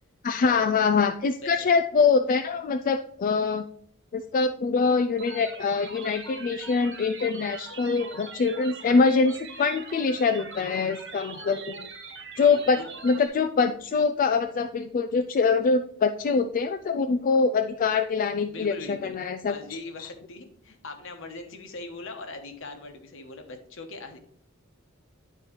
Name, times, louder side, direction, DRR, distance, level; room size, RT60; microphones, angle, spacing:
voice 1, 0.2-3.6 4.1-11.9 12.4-19.5 20.0-20.1, left 4 dB, 40° left, 8 dB, 0.3 m, -24 dB
sound 1, 5.2-13.3, right 4 dB, 60° right, 1.4 m, -42 dB
voice 2, 12.5-12.9 18.5-19.2 19.5-24.2, left 2 dB, 65° left, 6 dB, 1.1 m, -40 dB
9.7 x 4.4 x 3.1 m, 0.64 s
head